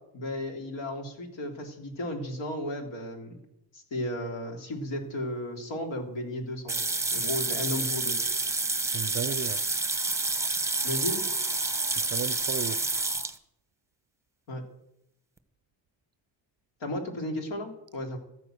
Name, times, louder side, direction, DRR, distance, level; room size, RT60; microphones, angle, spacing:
voice 1, 0.1-3.4 3.7-6.8 7.1-8.2 10.8-11.2 14.5-14.6 16.8-18.2, left 1 dB, 75° left, 3.3 m, -34 dB
sound 1, 6.7-13.4, right 3 dB, 5° right, 1.1 m, -29 dB
voice 2, 8.8-9.6 12.0-12.9, right 8 dB, 35° right, 0.5 m, -35 dB
13.5 x 9.6 x 7.8 m
cardioid pair, 115°, 45 cm